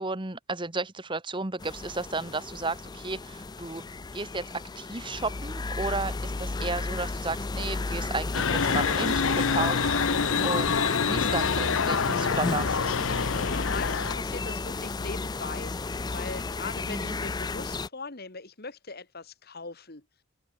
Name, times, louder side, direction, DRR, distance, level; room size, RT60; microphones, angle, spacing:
voice 1, 0.0-3.8 4.1-12.8 16.9-17.2, right 3 dB, 20° right, 1.2 m, -33 dB
sound 1, 1.6-17.9, left 3 dB, 20° left, 0.4 m, -33 dB
sound 2, 8.3-14.2, left 5 dB, 60° left, 0.8 m, -26 dB
voice 2, 13.4-15.7 16.1-20.0, left 4 dB, 45° left, 1.7 m, -40 dB
open air
head